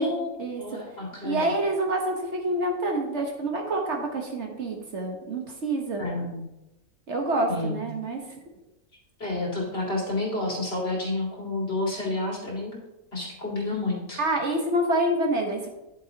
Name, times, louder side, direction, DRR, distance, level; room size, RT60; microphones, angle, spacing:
voice 1, 0.0-1.5 6.0-6.4 7.5-7.8 9.2-12.8 13.1-14.2, left 2 dB, 45° left, -3 dB, 2.5 m, -30 dB
voice 2, 1.2-6.0 7.1-8.2 14.2-15.7, right 1 dB, 55° right, 2 dB, 1.5 m, -27 dB
10.0 x 8.4 x 2.9 m, 0.95 s
omnidirectional pair, 1.5 m